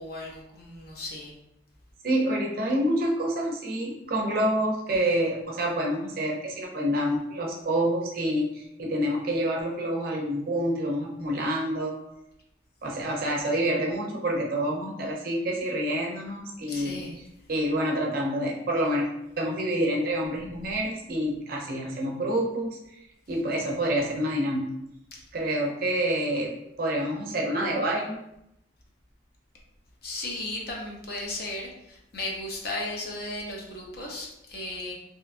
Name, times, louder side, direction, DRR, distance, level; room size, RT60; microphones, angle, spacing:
voice 1, 0.0-1.3 16.7-17.2 25.1-25.2 30.0-34.9, left 2 dB, 50° left, -1 dB, 0.6 m, -35 dB
voice 2, 2.0-11.9 12.8-17.0 17.5-19.1 19.4-22.8 23.3-24.7 25.3-26.5 26.8-28.2, right 1 dB, 50° right, -1 dB, 0.5 m, -27 dB
2.7 x 2.3 x 2.4 m, 0.83 s
head